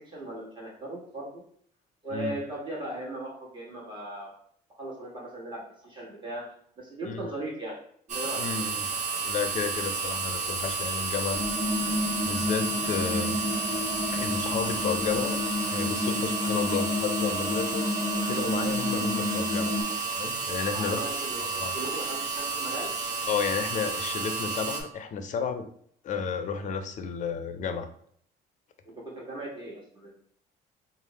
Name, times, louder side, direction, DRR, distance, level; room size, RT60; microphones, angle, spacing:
voice 1, 0.0-1.4 2.0-4.3 4.8-6.5 6.8-7.8 8.1-8.5 19.9-20.0 20.7-22.9 28.9-30.2, right 1 dB, 30° right, -3 dB, 1.4 m, -38 dB
sound 1, 8.1-24.8, right 4 dB, 45° right, 0.8 m, -31 dB
voice 2, 8.4-8.9 9.2-11.4 11.7-11.9 12.2-13.4 14.1-15.4 15.7-17.9 18.3-19.8 20.1-21.0 21.4-21.8 23.3-25.7 26.0-27.9, left 6 dB, 45° left, 8 dB, 0.5 m, -32 dB
sound 2, 11.3-19.8, left 2 dB, 10° left, 0.9 m, -31 dB
3.3 x 2.0 x 4.1 m, 0.64 s
cardioid pair, 110°, 17 cm